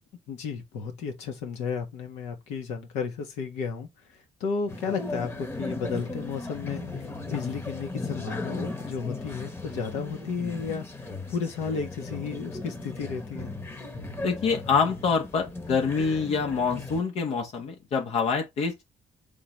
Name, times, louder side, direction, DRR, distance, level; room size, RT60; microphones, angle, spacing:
voice 1, 0.3-13.5, left 5 dB, 90° left, 1.4 m, -33 dB
sound 1, 4.7-17.0, left 2 dB, 20° left, 1.1 m, -37 dB
voice 2, 14.2-18.8, left 5 dB, 70° left, 1.1 m, -26 dB
3.9 x 3.8 x 3.1 m
cardioid pair, 80°, 11 cm